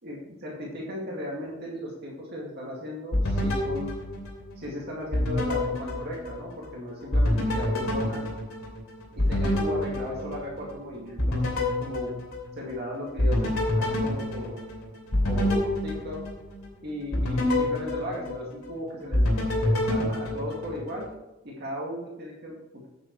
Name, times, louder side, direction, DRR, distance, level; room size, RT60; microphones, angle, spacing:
voice 1, 0.0-3.9 4.6-8.3 9.1-11.4 11.8-12.1 12.5-14.6 15.3-16.2 16.8-19.3 19.6-21.1 21.4-22.9, left 1 dB, 50° right, -3 dB, 2.1 m, -36 dB
sound 1, 3.1-4.7 5.1-6.7 7.1-10.8 11.2-12.8 13.2-16.7 17.1-18.7 19.1-21.1, left 1 dB, 80° left, 2.8 m, -27 dB
9.1 x 7.6 x 4.6 m, 0.97 s
head